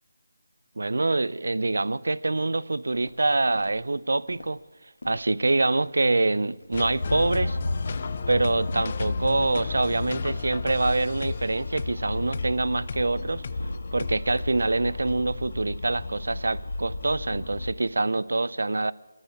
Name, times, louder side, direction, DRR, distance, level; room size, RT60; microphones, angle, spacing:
voice 1, 0.8-4.6 5.0-7.6 8.3-13.4 13.9-18.9, right 2 dB, 75° right, 0.6 m, -25 dB
Walk footsteps, 2.4-15.2, left 2 dB, 85° left, 1.9 m, -50 dB
sound 1, 6.7-14.2, left 6 dB, 35° left, 0.5 m, -36 dB
sound 2, 7.0-17.7, left 2 dB, 55° left, 1.6 m, -33 dB
17.0 x 9.7 x 8.7 m
figure-of-eight pair, 170°, 0 cm